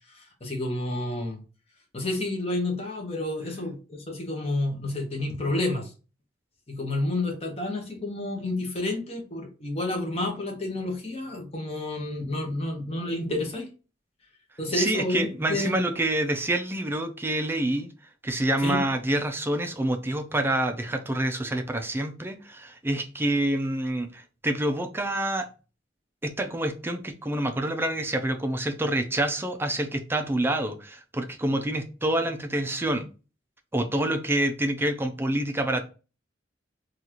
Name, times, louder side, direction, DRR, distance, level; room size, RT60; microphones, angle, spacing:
voice 1, 0.1-1.4 1.9-5.9 6.7-13.7 14.6-15.8 18.6-18.8, left 2 dB, 35° left, 1.0 m, -30 dB
voice 2, 14.7-17.9 18.2-25.5 26.2-33.1 33.7-35.8, right 1 dB, 15° right, 0.4 m, -27 dB
3.9 x 2.4 x 2.9 m
head